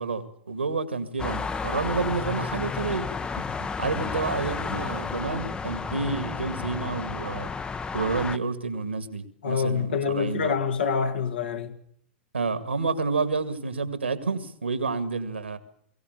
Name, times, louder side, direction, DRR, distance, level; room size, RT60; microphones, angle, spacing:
voice 1, 0.0-3.1 3.4-7.5 7.9-10.6 12.3-15.6, right 4 dB, 85° right, 2.2 m, -29 dB
sound 1, 1.2-8.4, left 5 dB, 15° left, 0.8 m, -32 dB
voice 2, 9.4-11.7, left 6 dB, 70° left, 2.1 m, -26 dB
22.5 x 17.0 x 8.2 m
figure-of-eight pair, 100°, 6 cm